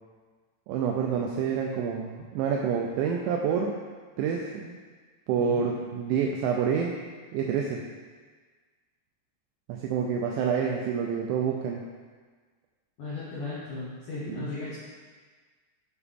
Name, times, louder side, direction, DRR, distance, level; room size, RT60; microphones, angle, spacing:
voice 1, 0.7-3.7 4.2-4.8 5.3-6.9 7.3-7.8 9.7-11.8 14.3-14.5, right 7 dB, 90° right, 0 dB, 2.6 m, -28 dB
voice 2, 5.3-5.6 13.0-14.8, left 3 dB, 90° left, -9 dB, 1.7 m, -36 dB
7.0 x 6.6 x 3.5 m, 1.5 s
omnidirectional pair, 5.8 m